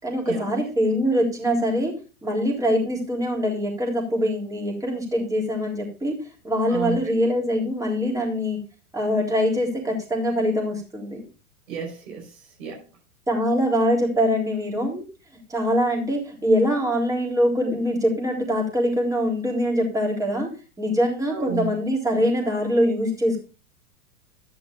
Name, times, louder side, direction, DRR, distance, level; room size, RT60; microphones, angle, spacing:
voice 1, 0.0-1.9 2.2-6.2 6.4-8.6 8.9-11.2 13.3-15.0 15.5-20.5 20.8-23.4, equal, 5° right, -1 dB, 3.7 m, -23 dB
voice 2, 11.7-12.8 21.3-21.7, right 9 dB, 60° right, -1 dB, 5.2 m, -32 dB
14.0 x 10.5 x 2.5 m, 0.32 s
figure-of-eight pair, 95°, 46 cm